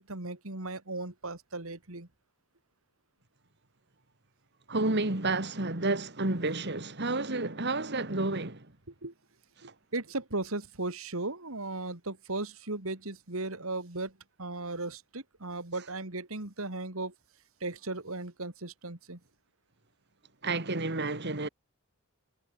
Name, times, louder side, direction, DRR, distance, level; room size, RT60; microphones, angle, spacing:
voice 1, 0.0-2.1 8.3-8.4 9.0-9.1 9.6-14.1 14.4-17.1 17.6-19.2, right 2 dB, 70° right, 2.8 m, -36 dB
voice 2, 4.7-8.7 20.4-21.5, right 2 dB, 50° right, 2.7 m, -30 dB
head